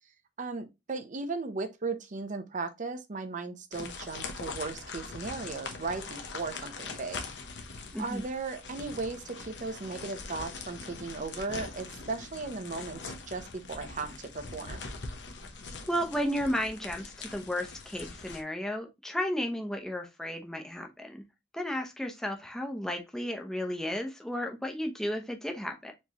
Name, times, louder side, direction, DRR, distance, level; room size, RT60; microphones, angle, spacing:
voice 1, 0.4-7.3 8.0-14.9, right 3 dB, 45° right, 0.7 m, -36 dB
sound 1, 3.7-18.4, left 4 dB, 80° left, 0.9 m, -42 dB
voice 2, 7.9-8.2 15.9-21.2 21.5-25.9, equal, 5° left, 0.7 m, -33 dB
4.5 x 3.1 x 2.9 m
head